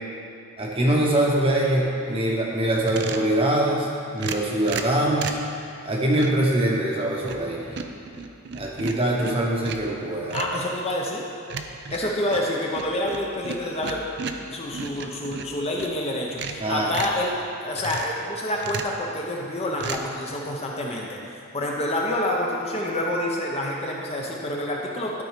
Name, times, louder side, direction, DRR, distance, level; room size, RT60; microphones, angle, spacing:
voice 1, 0.6-5.4 5.8-7.8 8.5-10.5 16.6-16.9, right 1 dB, 25° right, -2 dB, 1.1 m, -23 dB
sound 1, 2.8-3.3 4.2-5.5 6.1-6.5 7.0-7.5 7.8-9.9 10.3-10.6 11.5-16.0 16.3-17.2 17.8-18.2 18.6-19.0 19.8-20.0, right 5 dB, 50° right, 0.5 m, -34 dB
voice 2, 10.3-11.2 11.9-14.0 14.5-17.3 17.6-25.1, left 1 dB, 30° left, -2 dB, 0.8 m, -28 dB
12.0 x 4.3 x 5.1 m, 2.6 s
head